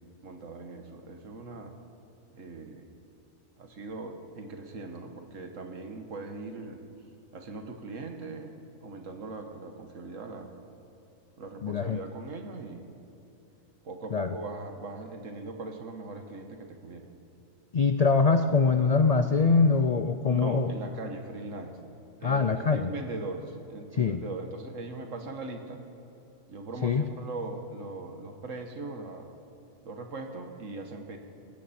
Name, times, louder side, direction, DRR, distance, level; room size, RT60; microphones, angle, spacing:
voice 1, 0.2-1.7 2.3-2.8 3.6-6.8 7.3-8.5 8.8-10.5 11.4-12.9 13.8-17.1 20.3-21.8 22.2-25.8 26.5-29.3 29.8-31.2, right 3 dB, 70° right, 5 dB, 1.7 m, -40 dB
voice 2, 11.6-12.0 14.1-14.4 17.7-20.7 22.2-22.9 23.9-24.2 26.8-27.1, left 4 dB, 65° left, 8 dB, 0.3 m, -23 dB
19.0 x 16.5 x 4.3 m, 2.9 s
omnidirectional pair, 1.4 m